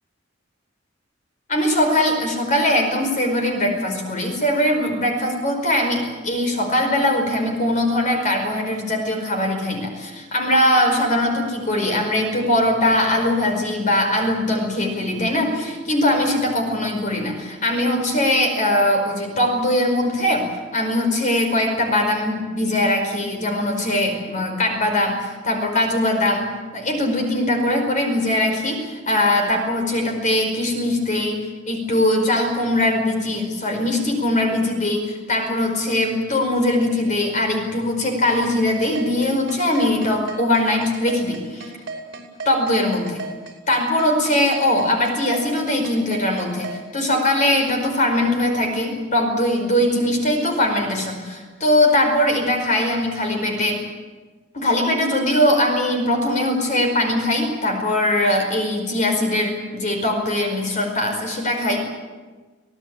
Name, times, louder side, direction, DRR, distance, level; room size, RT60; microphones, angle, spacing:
voice 1, 1.5-41.7 42.4-43.2 43.7-53.8 54.5-61.8, left 1 dB, 40° left, 4 dB, 5.0 m, -21 dB
sound 1, 38.4-46.8, right 3 dB, 55° right, 5.6 m, -33 dB
25.5 x 17.5 x 8.9 m, 1.3 s
head